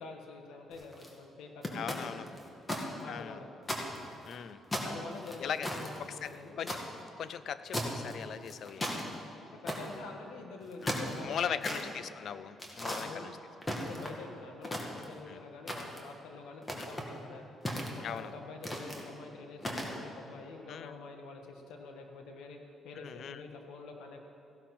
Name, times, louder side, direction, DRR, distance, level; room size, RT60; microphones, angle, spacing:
voice 1, 0.0-2.3 3.0-3.5 4.8-6.6 9.4-11.8 13.0-13.3 13.8-17.4 17.9-22.6 22.8-24.2, left 4 dB, 90° left, 3 dB, 1.6 m, -47 dB
sound 1, 0.7-1.1 1.6-2.8 3.2-3.3 3.6-4.4 4.7-6.8 7.7-8.1 8.5-9.0 9.7-10.0 10.6-11.8 12.6-13.0 13.6-14.2 14.6-15.2 15.7-16.1 16.6-17.1 17.7-18.2 18.6-19.0 19.6-20.0, left 1 dB, 20° left, 2.2 m, -36 dB
voice 2, 1.7-2.3 3.1-3.4 4.3-4.6 5.4-5.7 6.2-6.8 7.2-9.2 10.8-10.9 11.2-13.3 15.3-15.4 16.8-16.9 18.0-18.3 20.7-21.0 23.0-23.4, left 8 dB, 65° left, 14 dB, 0.5 m, -39 dB
16.0 x 12.0 x 4.3 m, 2.9 s
cardioid pair, 90°, 0 cm